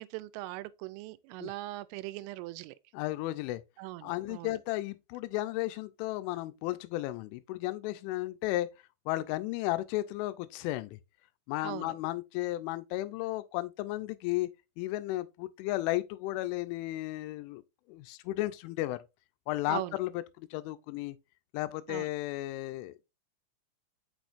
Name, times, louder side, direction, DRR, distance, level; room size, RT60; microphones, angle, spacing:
voice 1, 0.0-2.8 3.8-4.6 11.6-12.0 19.7-20.0 21.9-22.1, right 18 dB, 90° right, 3.1 m, -40 dB
voice 2, 2.9-3.6 4.0-8.7 9.1-11.0 11.5-14.5 14.8-17.6 17.9-19.0 19.5-20.1 20.4-21.2 21.5-22.9, left 17 dB, 85° left, 3.0 m, -34 dB
6.2 x 6.2 x 2.5 m
omnidirectional pair, 5.6 m